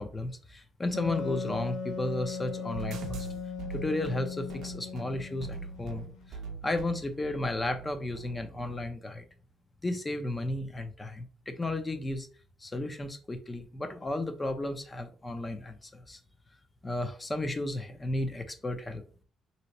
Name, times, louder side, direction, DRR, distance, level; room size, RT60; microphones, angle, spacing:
voice 1, 0.0-3.3 3.7-9.2 9.8-12.3 12.6-16.2 16.8-19.0, left 2 dB, 20° left, 8 dB, 0.6 m, -34 dB
Wind instrument woodwind instrument, 0.9-6.3, left 5 dB, 80° left, 0.5 m, -38 dB
sound 1, 2.7-8.8, right 5 dB, 80° right, 0.5 m, -42 dB
2.7 x 2.1 x 4.1 m, 0.40 s
cardioid pair, 90°, 0 cm